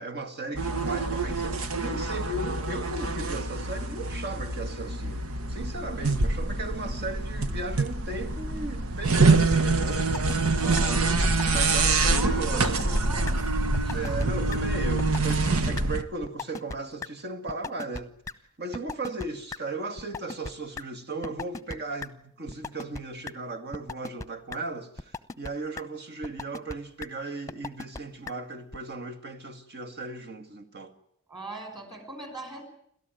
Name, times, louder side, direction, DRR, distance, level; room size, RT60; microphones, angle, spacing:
voice 1, 0.0-10.3 10.6-11.2 11.5-13.0 13.9-18.1 18.6-30.9, right 2 dB, 50° right, 2.2 m, -36 dB
sound 1, 0.5-16.0, right 3 dB, 80° right, 1.3 m, -26 dB
sound 2, 10.1-10.5 10.8-10.9 11.2-11.8 12.0-12.1 12.5-13.0 13.3-13.4 13.7-14.3 14.5-14.6 15.0-15.5 15.8-15.9 16.2-16.8 17.0-17.1 17.5-18.0 18.3-18.4 18.7-19.6 20.0-20.8 21.2-21.8 22.0-22.1 22.5-23.0 23.3-23.4 23.7-24.2 24.5-24.6 25.0-25.5 25.8-25.9 26.2-26.7 27.0-27.1 27.5-28.0 28.3-28.4 28.7-28.8, left 4 dB, 15° left, 1.0 m, -36 dB
voice 2, 10.6-11.2 12.1-13.3 13.8-14.3 31.3-32.6, right 2 dB, 20° right, 5.3 m, -40 dB
29.5 x 13.5 x 9.3 m
head